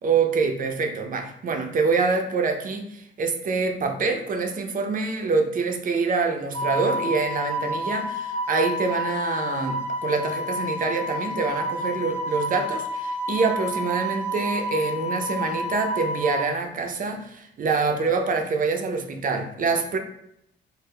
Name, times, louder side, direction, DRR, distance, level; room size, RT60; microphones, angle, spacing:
voice 1, 0.0-20.0, right 4 dB, 45° right, 4 dB, 0.5 m, -25 dB
Wind instrument woodwind instrument, 6.5-16.4, left 1 dB, 30° left, 0.5 m, -29 dB
2.2 x 2.0 x 3.3 m, 0.74 s
cardioid pair, 90°, 20 cm